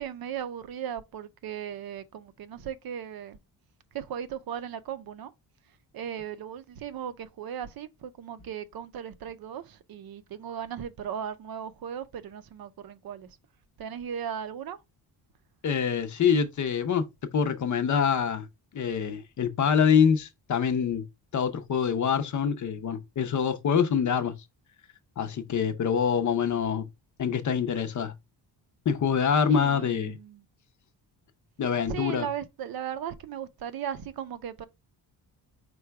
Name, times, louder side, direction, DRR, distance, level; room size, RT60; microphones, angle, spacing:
voice 1, 0.0-3.4 3.9-5.3 5.9-13.4 13.8-14.8 29.5-30.4 31.9-34.7, right 9 dB, 60° right, 0.5 m, -37 dB
voice 2, 15.6-17.0 17.3-18.5 18.7-21.0 21.3-24.3 25.2-26.8 27.2-28.1 28.9-30.2 31.6-32.3, left 7 dB, 45° left, 0.6 m, -25 dB
4.7 x 2.3 x 4.5 m
cardioid pair, 150°, 42 cm